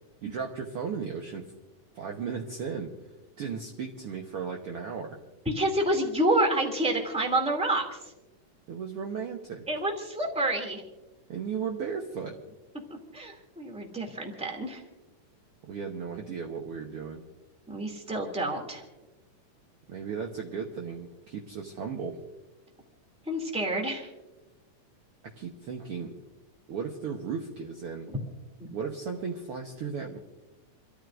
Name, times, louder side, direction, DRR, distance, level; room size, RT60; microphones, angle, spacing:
voice 1, 0.2-1.5 1.9-2.9 3.4-5.2 8.7-9.6 11.3-12.4 15.7-17.2 19.9-22.2 25.4-26.1 26.7-28.1 28.7-30.2, right 6 dB, 60° right, 1 dB, 1.7 m, -35 dB
voice 2, 5.5-8.0 9.7-10.8 13.1-14.8 17.7-18.8 23.3-24.1, right 1 dB, ahead, 2 dB, 2.0 m, -28 dB
29.0 x 14.0 x 2.6 m, 1.1 s
omnidirectional pair, 3.6 m